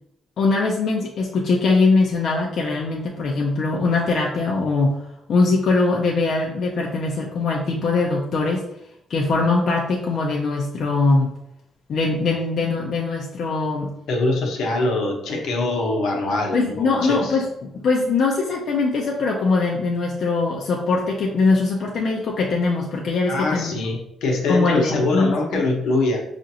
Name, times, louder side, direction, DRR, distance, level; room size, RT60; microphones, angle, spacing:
voice 1, 0.4-5.0 5.3-8.6 9.1-11.3 11.9-13.9 16.5-23.7 24.5-25.6, left 3 dB, 60° left, -1 dB, 0.6 m, -21 dB
voice 2, 14.1-17.4 23.3-26.2, left 2 dB, 80° left, 0 dB, 1.0 m, -23 dB
5.0 x 2.5 x 2.8 m, 0.80 s
cardioid pair, 90°, 0 cm